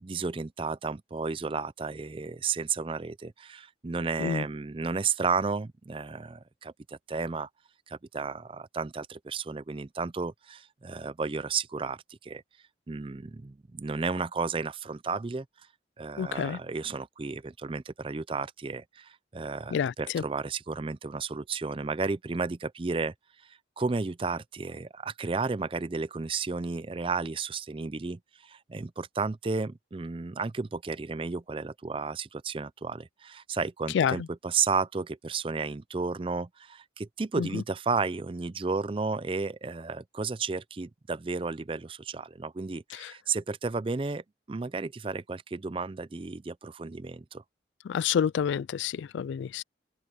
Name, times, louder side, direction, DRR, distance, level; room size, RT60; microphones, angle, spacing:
voice 1, 0.0-7.5 7.9-12.4 12.9-15.5 16.0-23.1 23.4-47.4, right 4 dB, 30° right, 0.4 m, -33 dB
voice 2, 16.2-16.6 19.7-20.2 33.9-34.3 37.4-37.6 42.9-43.1 47.8-49.6, left 7 dB, 80° left, 0.3 m, -29 dB
open air
head